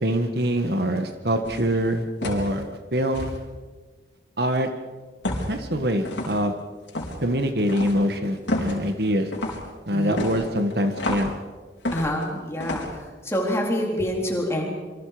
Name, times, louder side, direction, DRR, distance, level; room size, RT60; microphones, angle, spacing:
voice 1, 0.0-2.6 2.9-3.4 4.4-4.7 5.5-6.5 7.2-9.3 9.9-11.3, equal, 60° right, 6 dB, 1.7 m, -24 dB
sound 1, 1.4-1.7 2.2-2.5 3.1-3.4 5.2-5.6 6.0-6.4 6.9-7.2 7.7-8.0 8.5-8.8 9.3-9.7 10.2-11.3 11.9-12.3 12.6-12.9, left 1 dB, 80° left, 4.8 m, -29 dB
voice 2, 9.9-10.2 11.9-14.7, equal, 15° left, -1 dB, 4.0 m, -27 dB
27.0 x 24.5 x 5.1 m, 1.4 s
head